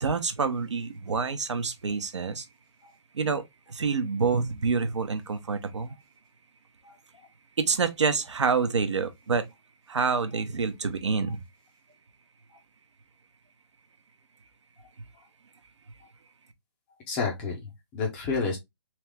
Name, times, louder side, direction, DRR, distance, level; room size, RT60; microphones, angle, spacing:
voice 1, 0.0-2.5 3.1-6.0 7.6-9.5 9.9-11.4, right 5 dB, 85° right, 1.0 m, -27 dB
voice 2, 17.1-18.6, left 4 dB, 5° left, 0.4 m, -31 dB
3.5 x 3.0 x 3.4 m
hypercardioid pair, 170°, 15 cm